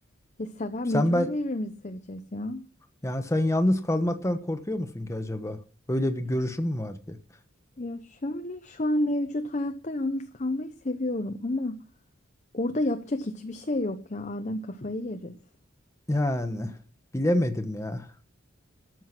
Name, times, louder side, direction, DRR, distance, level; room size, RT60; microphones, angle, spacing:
voice 1, 0.4-2.6 7.8-11.8 12.5-15.4, left 1 dB, 35° left, 0.8 m, -30 dB
voice 2, 0.9-1.3 3.0-5.6 5.9-7.2 16.1-16.7 17.1-18.1, left 1 dB, 15° left, 1.1 m, -26 dB
13.0 x 7.8 x 6.0 m
head